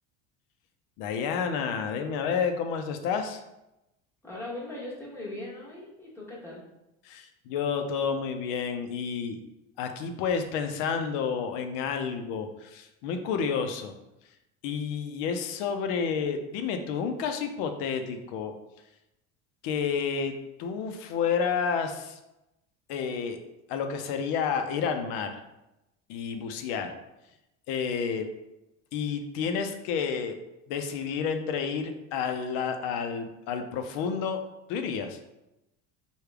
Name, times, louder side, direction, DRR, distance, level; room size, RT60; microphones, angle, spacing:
voice 1, 1.0-3.4 7.0-9.4 9.8-13.9 14.6-18.5 19.6-20.3 20.6-22.2 22.9-23.4 23.7-25.4 26.1-26.9 27.7-28.3 28.9-30.3 30.7-34.4 34.7-35.2, left 6 dB, 70° left, 6 dB, 0.6 m, -30 dB
voice 2, 4.2-6.6, left 1 dB, 5° left, -7 dB, 1.3 m, -39 dB
3.3 x 2.3 x 3.4 m, 0.92 s
supercardioid pair, 105°, 35 cm